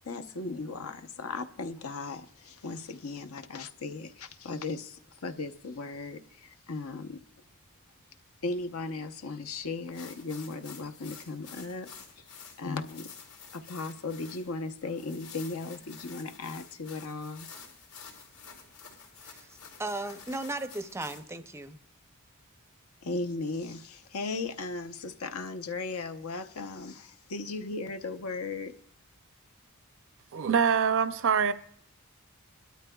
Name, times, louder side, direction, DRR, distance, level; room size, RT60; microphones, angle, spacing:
voice 1, 0.0-7.2 8.4-11.9 12.6-13.1 13.5-17.5 23.0-28.7, left 3 dB, 70° left, 0.7 m, -37 dB
sound 1, 9.9-21.2, left 6 dB, 90° left, 3.7 m, -50 dB
voice 2, 19.8-21.8, right 2 dB, 10° right, 0.5 m, -36 dB
voice 3, 30.3-31.5, right 6 dB, 60° right, 0.5 m, -24 dB
22.0 x 12.5 x 2.3 m
head